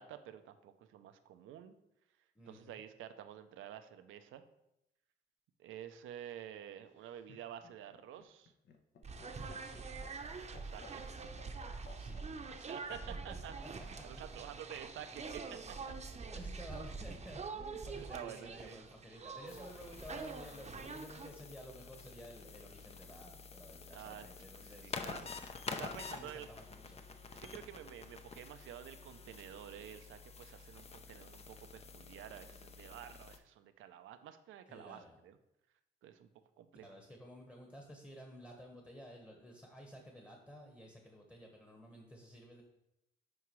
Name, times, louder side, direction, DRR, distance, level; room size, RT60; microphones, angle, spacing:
voice 1, 0.0-1.7 2.5-4.4 5.6-8.5 10.6-11.0 12.7-13.5 14.0-15.9 16.3-16.4 18.0-18.8 23.9-24.3 24.6-26.5 27.3-35.4 36.0-36.3 36.6-36.9, right 10 dB, 80° right, 9 dB, 0.6 m, -50 dB
voice 2, 2.3-2.8 9.6-9.8 11.9-14.2 14.5-14.8 16.2-25.4 25.7-27.0 34.7-35.2 36.7-42.6, equal, 10° left, 1 dB, 1.3 m, -54 dB
Laughter, 6.9-12.6 13.9-14.5, left 5 dB, 60° left, 0.9 m, -59 dB
sound 1, 9.0-21.3, right 4 dB, 35° right, 0.8 m, -45 dB
sound 2, 19.5-33.4, left 4 dB, 30° left, 0.6 m, -49 dB
9.6 x 4.6 x 3.1 m, 0.86 s
cardioid pair, 90°, 20 cm